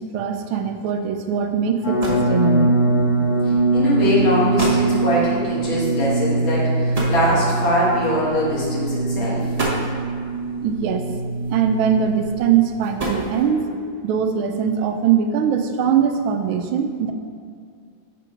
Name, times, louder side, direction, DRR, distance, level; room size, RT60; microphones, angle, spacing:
voice 1, 0.0-2.8 10.6-11.1 11.5-17.1, right 7 dB, 90° right, 6 dB, 1.4 m, -21 dB
sound 1, 1.4-1.5 1.8-2.4 3.4-3.6 4.2-4.3 4.6-4.9 6.9-7.8 8.7-8.9 9.4-10.1 11.3-11.8 12.6-13.7, right 1 dB, 25° right, 0.9 m, -28 dB
sound 2, 1.8-12.8, right 3 dB, 50° left, 2.2 m, -22 dB
voice 2, 3.7-9.5, left 1 dB, 80° left, -7 dB, 2.5 m, -22 dB
6.0 x 4.6 x 4.8 m, 2.1 s
omnidirectional pair, 2.1 m